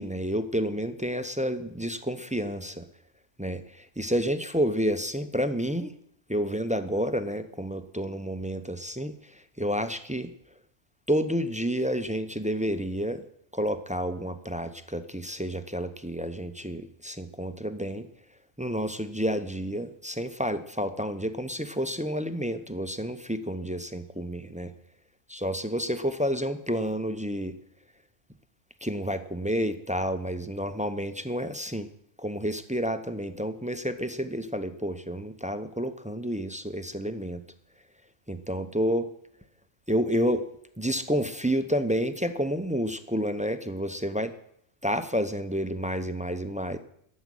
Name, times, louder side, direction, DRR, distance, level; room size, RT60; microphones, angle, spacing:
voice 1, 0.0-2.9 3.4-5.9 6.3-10.3 11.1-13.3 13.5-18.1 18.6-24.7 25.3-27.6 28.8-31.9 32.2-37.4 38.3-39.1 39.9-40.5 40.8-44.3 44.8-46.8, equal, 10° right, 10 dB, 0.5 m, -30 dB
13.5 x 7.4 x 9.8 m, 0.71 s
omnidirectional pair, 1.3 m